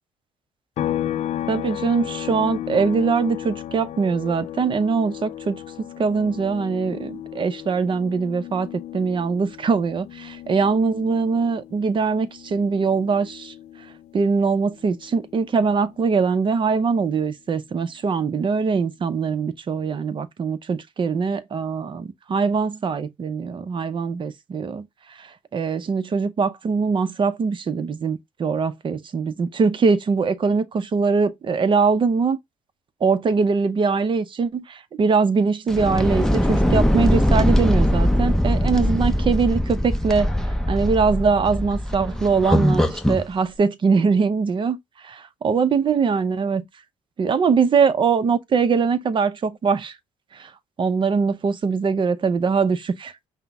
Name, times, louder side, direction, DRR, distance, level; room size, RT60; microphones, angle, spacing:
sound 1, 0.8-14.3 14.6-16.8, left 11 dB, 55° left, 0.5 m, -34 dB
voice 1, 1.5-13.5 14.1-24.9 25.2-32.4 33.0-40.3 40.7-44.8 45.0-46.7 47.2-49.9 50.3-50.5 50.8-53.3, right 5 dB, 40° right, 0.6 m, -22 dB
sound 2, 35.7-43.3, equal, 5° left, 0.7 m, -21 dB
5.6 x 2.1 x 3.4 m
cardioid pair, 100°, 13 cm